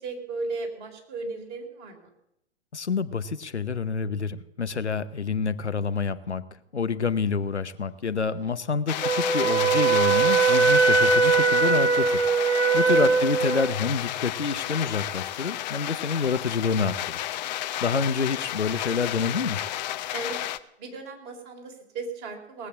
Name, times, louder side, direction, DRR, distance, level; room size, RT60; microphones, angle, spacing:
voice 1, 0.0-2.1 12.8-13.1 20.1-20.4 20.8-22.7, right 3 dB, 45° right, 2 dB, 3.8 m, -36 dB
voice 2, 2.7-6.4 6.7-12.2 12.7-17.3 17.8-19.6, left 5 dB, 85° left, 14 dB, 0.8 m, -27 dB
sound 1, 8.9-20.6, left 14 dB, 40° left, 0.7 m, -32 dB
Wind instrument woodwind instrument, 9.0-13.7, right 5 dB, 85° right, 1.2 m, -21 dB
19.0 x 8.3 x 7.3 m, 0.80 s
figure-of-eight pair, 105°, 33 cm